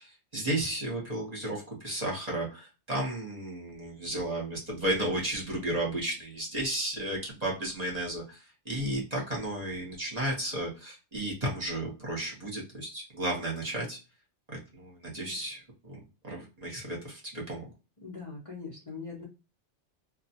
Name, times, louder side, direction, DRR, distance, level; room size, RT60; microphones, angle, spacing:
voice 1, 0.0-14.0 14.5-17.7, right 1 dB, 35° right, -2 dB, 1.0 m, -33 dB
voice 2, 18.0-19.3, left 4 dB, 35° left, -4 dB, 0.8 m, -41 dB
2.3 x 2.3 x 2.7 m, 0.30 s
omnidirectional pair, 1.2 m